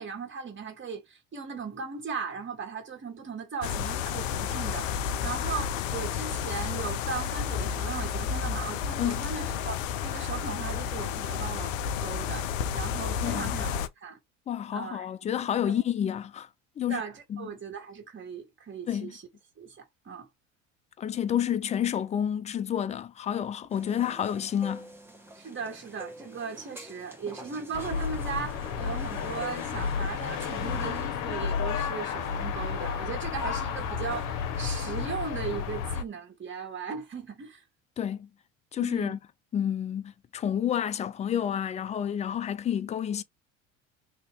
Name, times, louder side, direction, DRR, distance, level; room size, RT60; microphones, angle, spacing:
voice 1, 0.0-14.2 14.7-15.1 15.6-15.7 16.8-19.2 19.6-20.3 25.3-37.6 38.8-39.2, right 6 dB, 30° right, 2.0 m, -38 dB
sound 1, 3.6-13.9, left 8 dB, 75° left, 0.6 m, -31 dB
voice 2, 14.5-16.5 16.8-17.0 17.3-17.5 18.9-19.1 21.0-24.9 38.0-38.3 38.7-39.2 39.5-43.2, left 9 dB, 20° left, 0.3 m, -29 dB
sound 2, 23.7-31.1, equal, 5° right, 1.1 m, -47 dB
sound 3, 27.7-36.0, left 6 dB, 55° left, 1.0 m, -32 dB
3.0 x 2.8 x 3.3 m
hypercardioid pair, 65°, 39 cm